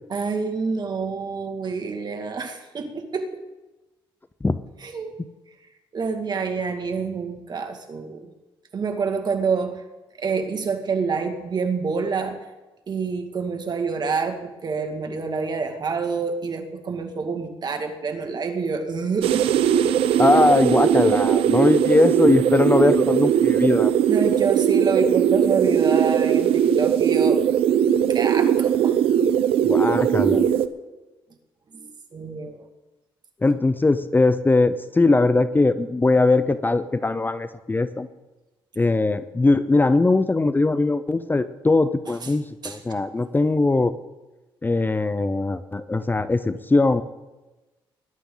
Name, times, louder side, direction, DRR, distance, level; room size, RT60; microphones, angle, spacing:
voice 1, 0.1-3.4 4.8-5.1 5.9-8.3 8.7-9.8 10.2-12.4 12.9-19.5 24.1-27.5 28.1-29.0 31.7-32.7 42.1-42.3 42.6-42.8, right 5 dB, 50° right, 5 dB, 2.1 m, -27 dB
sound 1, 19.2-30.7, right 9 dB, 85° right, 0.7 m, -19 dB
voice 2, 20.2-23.9 29.6-30.5 33.4-38.1 38.8-43.9 44.6-47.0, left 3 dB, 20° left, 13 dB, 0.7 m, -20 dB
20.5 x 11.5 x 3.9 m, 1.1 s
cardioid pair, 75°, 9 cm